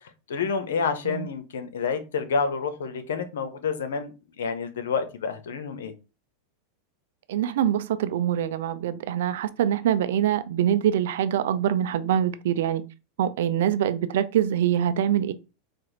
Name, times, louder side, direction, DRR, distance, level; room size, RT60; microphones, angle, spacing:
voice 1, 0.3-5.9, left 5 dB, 85° left, 0.7 m, -29 dB
voice 2, 7.3-12.8 13.2-15.3, right 10 dB, 75° right, 0.4 m, -24 dB
4.3 x 2.4 x 3.1 m
hypercardioid pair, 120°, 0 cm